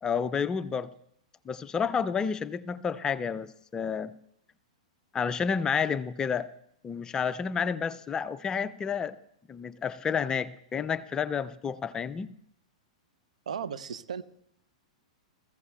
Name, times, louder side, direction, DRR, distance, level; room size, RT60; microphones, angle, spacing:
voice 1, 0.0-0.9 1.5-4.1 5.1-6.5 6.8-9.2 9.5-12.3, left 6 dB, 20° left, 15 dB, 0.4 m, -30 dB
voice 2, 13.5-14.2, right 7 dB, 75° right, 12 dB, 0.7 m, -35 dB
20.5 x 14.5 x 2.3 m, 0.72 s
hypercardioid pair, 110°, 4 cm